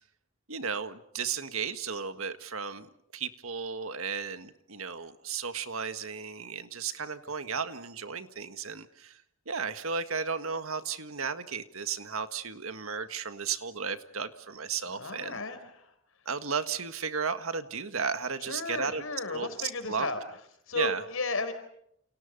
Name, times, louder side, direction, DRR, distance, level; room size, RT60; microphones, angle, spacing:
voice 1, 0.5-15.4 16.3-19.0 19.3-20.1 20.8-21.0, right 5 dB, 80° right, 9 dB, 1.7 m, -34 dB
voice 2, 14.9-15.9 18.4-20.2 20.7-21.5, left 3 dB, 80° left, 9 dB, 4.5 m, -34 dB
30.0 x 29.0 x 5.4 m, 0.74 s
head